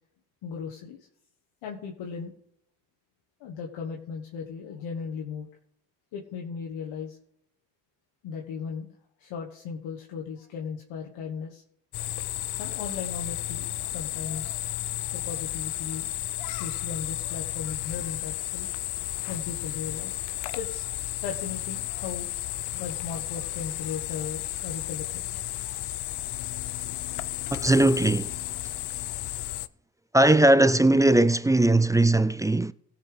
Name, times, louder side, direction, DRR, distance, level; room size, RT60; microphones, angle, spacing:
voice 1, 0.4-1.1 1.6-2.3 3.4-5.5 6.1-7.2 8.2-8.9 9.2-11.6 12.6-14.6 15.1-16.1 16.6-18.7 19.3-20.2 20.5-20.8 21.2-22.3 22.8-25.2 25.7-25.8, left 6 dB, 75° left, 1.5 m, -37 dB
sound 1, 11.9-29.7, left 15 dB, 60° left, 0.6 m, -33 dB
voice 2, 27.5-28.4 30.1-32.7, right 1 dB, 10° right, 0.3 m, -19 dB
17.0 x 5.8 x 4.9 m
supercardioid pair, 55°, 47 cm